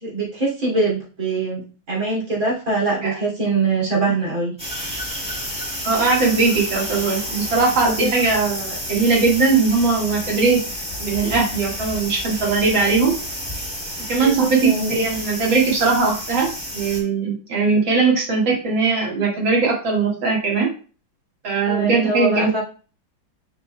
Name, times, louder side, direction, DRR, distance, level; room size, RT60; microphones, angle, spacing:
voice 1, 0.0-4.5 7.8-8.1 14.2-14.9 21.7-22.6, right 3 dB, 40° right, -4 dB, 3.2 m, -23 dB
sound 1, 4.6-17.0, equal, 5° right, 1.9 m, -30 dB
voice 2, 5.8-10.6 11.0-13.1 14.1-16.5 16.7-20.7 21.4-22.6, right 4 dB, 65° right, -2 dB, 2.5 m, -19 dB
6.6 x 6.5 x 2.2 m, 0.38 s
omnidirectional pair, 2.3 m